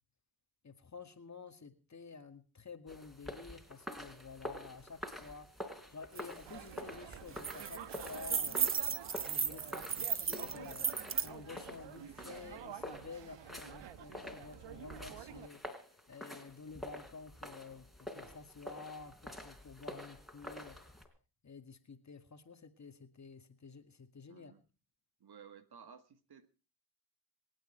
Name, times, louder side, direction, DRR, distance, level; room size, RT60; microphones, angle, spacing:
voice 1, 0.6-5.5 5.9-8.6 9.2-15.6 16.1-20.8 21.4-24.5, left 4 dB, 40° left, 7 dB, 2.1 m, -51 dB
sound 1, 2.9-21.1, left 1 dB, ahead, 3.9 m, -48 dB
sound 2, 6.2-6.3 6.6-6.8 7.1-11.3, right 6 dB, 30° right, 0.7 m, -35 dB
sound 3, 6.5-15.5, right 9 dB, 80° right, 1.2 m, -50 dB
voice 2, 24.3-24.6 25.2-26.5, right 7 dB, 60° right, 10 dB, 1.7 m, -56 dB
26.5 x 9.1 x 4.5 m, 0.35 s
cardioid pair, 65°, 43 cm